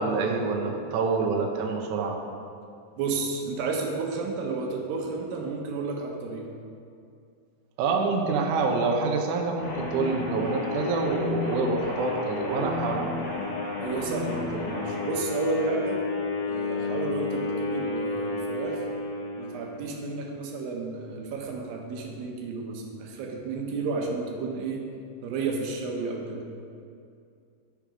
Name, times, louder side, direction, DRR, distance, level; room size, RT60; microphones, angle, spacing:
voice 1, 0.0-2.2 7.8-13.2, right 4 dB, 85° right, 2 dB, 1.7 m, -27 dB
voice 2, 3.0-6.5 13.8-16.0 16.5-18.8 19.4-24.8 25.2-26.5, right 4 dB, 70° right, 1 dB, 2.5 m, -32 dB
sound 1, 9.6-19.8, left 3 dB, 50° left, 2.5 m, -31 dB
12.5 x 5.2 x 5.0 m, 2.4 s
omnidirectional pair, 4.8 m